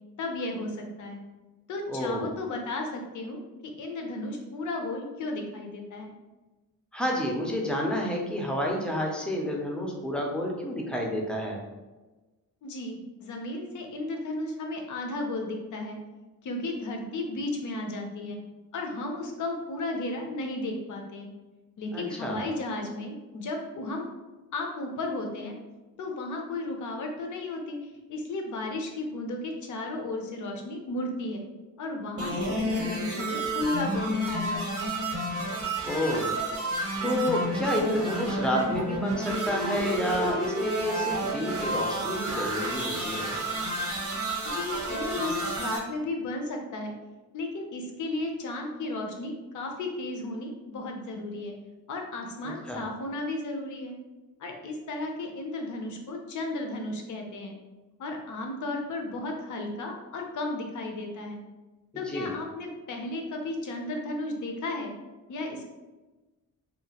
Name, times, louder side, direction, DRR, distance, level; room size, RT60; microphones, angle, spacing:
voice 1, 0.2-1.2 1.7-3.4 3.8-6.1 12.6-16.0 16.4-18.4 18.7-21.3 21.8-24.1 24.5-25.6 26.0-27.8 28.1-31.4 31.8-34.9 44.4-46.9 47.3-51.5 51.9-53.9 54.4-57.6 58.0-61.4 62.0-64.9 65.3-65.6, left 2 dB, 60° left, 2 dB, 0.5 m, -34 dB
voice 2, 1.9-2.3 6.9-11.6 21.9-22.5 35.8-36.3 37.0-43.4 52.7-52.8 61.9-62.3, equal, 5° left, 0 dB, 0.4 m, -29 dB
sound 1, 32.2-45.8, right 1 dB, 45° right, 0.6 m, -30 dB
2.8 x 2.4 x 2.8 m, 1.2 s
wide cardioid pair, 150°, 35 cm